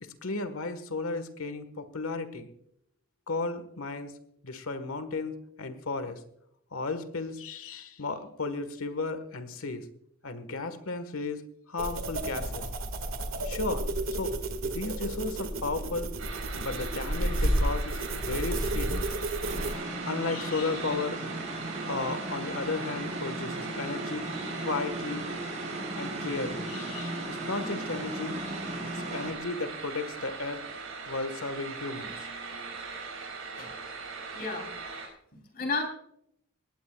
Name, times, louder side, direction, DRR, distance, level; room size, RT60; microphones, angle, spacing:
voice 1, 0.0-2.5 3.3-4.1 4.4-6.2 6.7-9.9 10.2-11.4 11.7-12.6 13.4-14.3 14.6-16.1 16.6-19.1 20.0-21.2 21.8-24.2 24.6-25.3 25.9-28.4 28.8-30.6 31.1-32.1, left 3 dB, 75° left, 10 dB, 1.5 m, -34 dB
sound 1, 11.8-19.7, right 1 dB, 70° right, 1.9 m, -31 dB
sound 2, 16.2-35.1, right 4 dB, 85° right, 5.2 m, -40 dB
sound 3, 19.4-29.3, right 1 dB, 35° right, 4.5 m, -37 dB
voice 2, 34.3-34.7 35.3-35.9, left 3 dB, 45° left, 3 dB, 3.5 m, -32 dB
19.5 x 17.0 x 2.4 m, 0.73 s
head